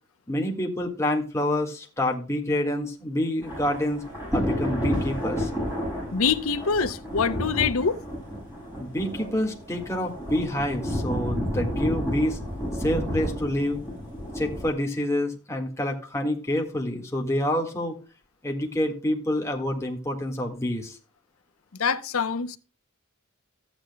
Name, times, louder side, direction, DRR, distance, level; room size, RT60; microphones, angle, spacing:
voice 1, 0.3-4.0 4.3-5.5 8.8-12.4 12.8-13.8 14.3-18.0 18.4-21.0, left 1 dB, 15° left, 1.7 m, -27 dB
Thunder / Rain, 3.4-14.7, equal, 10° right, 6.4 m, -31 dB
voice 2, 6.1-8.0 21.7-22.6, left 5 dB, 75° left, 0.7 m, -25 dB
14.0 x 8.9 x 2.2 m
head